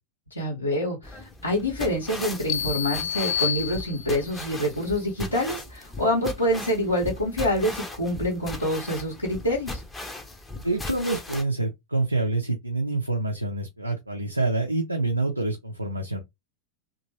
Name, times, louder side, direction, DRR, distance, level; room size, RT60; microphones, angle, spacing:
voice 1, 0.3-9.8, equal, 85° left, 1.1 m, -26 dB
sound 1, 1.0-11.4, left 2 dB, 10° left, 0.7 m, -38 dB
sound 2, 2.5-4.4, left 9 dB, 45° left, 0.3 m, -29 dB
voice 2, 10.6-16.2, right 2 dB, 85° right, 0.6 m, -27 dB
2.9 x 2.5 x 2.8 m
figure-of-eight pair, 90°, 0 cm